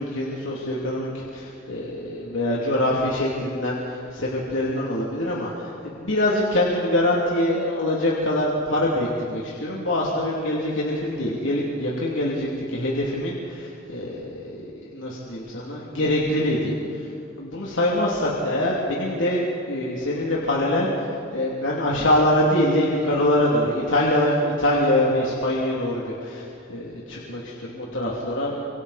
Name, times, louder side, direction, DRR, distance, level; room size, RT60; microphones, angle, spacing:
voice 1, 0.0-17.1 17.4-28.7, left 1 dB, 80° left, -5 dB, 3.0 m, -24 dB
28.5 x 26.0 x 4.3 m, 2.5 s
head